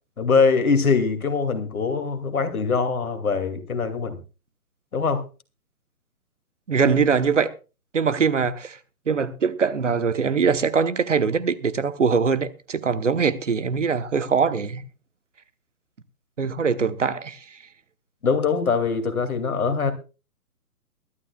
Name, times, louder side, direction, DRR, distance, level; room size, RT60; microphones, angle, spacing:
voice 1, 0.2-4.2 4.9-5.2 18.2-19.9, left 5 dB, 65° left, 2.6 m, -22 dB
voice 2, 6.7-7.5 7.9-8.8 9.1-14.8 16.4-17.6, right 5 dB, 50° right, 1.1 m, -22 dB
22.5 x 12.0 x 2.3 m
hypercardioid pair, 180°, 46 cm